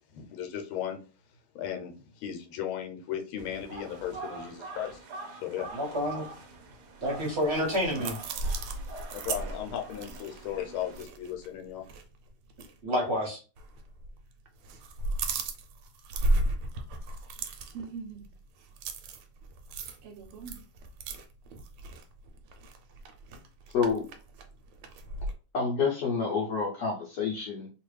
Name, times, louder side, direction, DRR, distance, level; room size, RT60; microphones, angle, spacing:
voice 1, 0.1-1.0 1.5-5.0 5.4-5.7 9.1-11.8, left 10 dB, 80° left, 3 dB, 1.5 m, -36 dB
sound 1, 3.4-11.0, right 3 dB, 65° right, 1.1 m, -45 dB
voice 2, 5.7-6.2 7.0-8.2 12.8-13.4, equal, 45° right, -1 dB, 0.9 m, -29 dB
sound 2, 7.3-11.5 11.8-12.0 12.5-12.7 13.6-14.2 14.5-25.3, right 2 dB, 90° right, 1.5 m, -35 dB
voice 3, 23.7-24.0 25.5-27.7, left 5 dB, 65° left, -3 dB, 1.2 m, -28 dB
3.3 x 2.4 x 3.2 m, 0.35 s
omnidirectional pair, 2.3 m